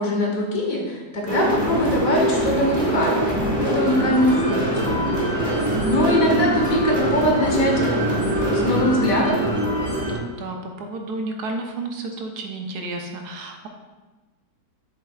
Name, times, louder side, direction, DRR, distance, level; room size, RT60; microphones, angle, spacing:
voice 1, 0.0-4.9 5.3-5.4 5.8-7.8 8.6-9.4, left 1 dB, 55° left, -1 dB, 1.5 m, -22 dB
sound 1, 1.3-10.2, right 1 dB, 5° left, 1.6 m, -23 dB
voice 2, 10.4-13.7, right 2 dB, 75° right, 3 dB, 1.3 m, -31 dB
7.4 x 7.1 x 2.4 m, 1.2 s
omnidirectional pair, 1.8 m